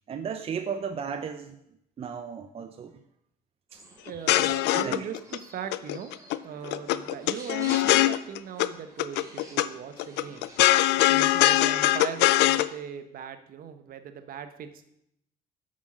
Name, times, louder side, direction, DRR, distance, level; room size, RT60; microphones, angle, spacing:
voice 1, 0.1-3.0 3.7-3.8 4.5-5.1, right 7 dB, 35° right, 7 dB, 0.6 m, -35 dB
sound 1, 3.7-10.6, right 1 dB, 20° right, 2.7 m, -49 dB
voice 2, 3.9-5.2 5.5-6.1 6.4-10.5 11.1-14.9, right 7 dB, 60° right, 10 dB, 1.0 m, -39 dB
sound 2, 4.1-5.4 5.7-6.4 6.6-8.7 9.0-9.7 10.0-12.7, left 16 dB, 85° left, 0.5 m, -22 dB
8.3 x 6.4 x 6.1 m, 0.77 s
cardioid pair, 110°, 17 cm